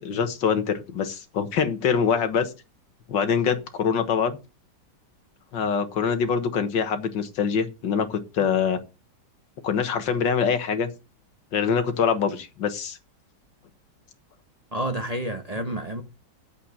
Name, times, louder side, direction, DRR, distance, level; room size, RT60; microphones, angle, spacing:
voice 1, 0.0-2.5 3.1-4.4 5.5-8.8 9.6-10.9 11.5-13.0, left 6 dB, 85° left, 2.1 m, -24 dB
voice 2, 14.7-16.0, right 1 dB, 25° right, 1.1 m, -29 dB
8.8 x 8.1 x 5.6 m
omnidirectional pair, 1.9 m